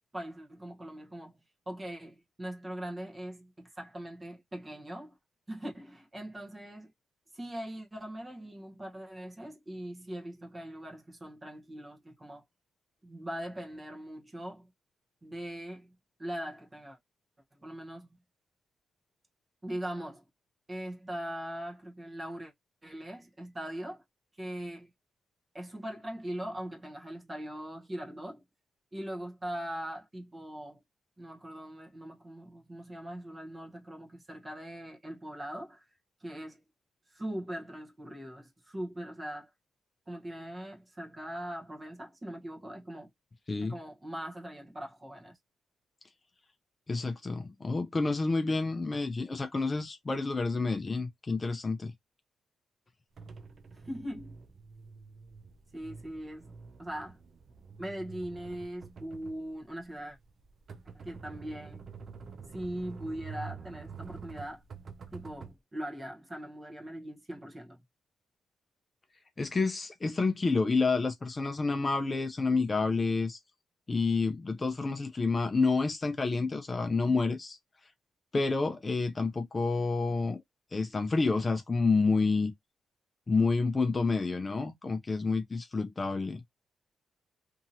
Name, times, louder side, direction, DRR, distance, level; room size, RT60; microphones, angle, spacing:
voice 1, 0.1-5.2 5.5-6.9 7.3-12.4 13.0-14.7 15.2-15.9 16.2-17.0 17.5-18.2 19.6-20.2 20.7-22.5 22.8-24.0 24.4-24.9 25.5-28.4 28.9-30.8 31.2-35.8 36.2-36.6 37.1-39.5 40.1-43.1 43.6-45.4 53.9-54.4 55.7-56.5 56.8-57.2 57.8-60.2 61.0-61.8 62.5-64.6 65.1-67.8, right 1 dB, 20° right, 0.9 m, -41 dB
voice 2, 46.9-51.9 69.4-73.4 73.9-77.6 78.3-80.4 80.7-82.5 83.3-86.4, left 4 dB, 25° left, 0.4 m, -29 dB
sound 1, 53.2-65.5, right 5 dB, 50° right, 0.6 m, -47 dB
2.8 x 2.7 x 2.6 m
cardioid pair, 105°, 0 cm